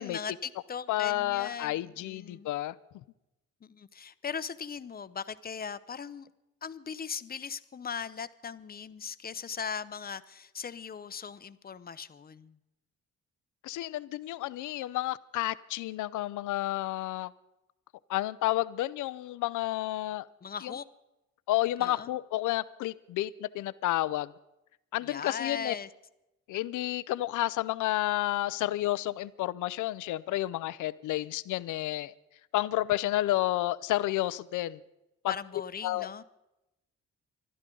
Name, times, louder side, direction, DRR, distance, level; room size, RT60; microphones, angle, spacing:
voice 1, 0.0-2.5 3.6-6.3 6.6-12.6 20.4-20.8 21.8-22.1 25.0-25.9 35.3-36.2, left 6 dB, 30° left, 14 dB, 0.7 m, -39 dB
voice 2, 0.9-2.7 13.6-17.3 18.1-20.3 20.6-20.7 21.5-24.3 24.9-25.7 26.5-32.1 32.5-34.8 35.2-35.3 35.8-36.1, left 15 dB, 80° left, 17 dB, 0.6 m, -31 dB
25.5 x 12.0 x 3.8 m, 0.93 s
cardioid pair, 90°, 30 cm